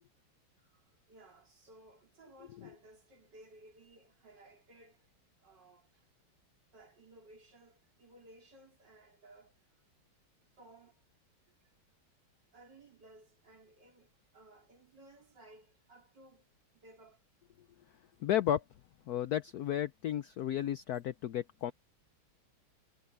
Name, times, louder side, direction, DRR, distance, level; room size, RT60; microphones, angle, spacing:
voice 1, 0.6-5.1 5.4-6.0 6.7-9.5 10.5-11.0 11.5-11.6 12.5-16.5 16.7-17.2, right 2 dB, 55° right, 4.7 m, -59 dB
voice 2, 18.2-18.6 19.1-21.7, left 11 dB, 75° left, 0.9 m, -33 dB
omnidirectional pair, 2.2 m